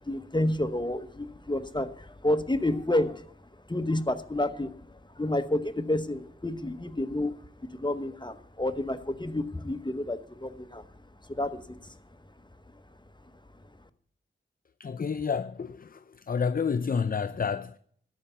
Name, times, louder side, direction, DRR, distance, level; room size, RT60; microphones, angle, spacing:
voice 1, 0.1-3.2 3.7-4.7 5.2-7.4 7.8-10.9 11.3-12.0, left 1 dB, 20° left, 0.9 m, -29 dB
voice 2, 14.8-16.0 16.3-17.8, left 6 dB, 45° left, 0.4 m, -29 dB
13.0 x 5.5 x 8.1 m
wide cardioid pair, 50°, 21 cm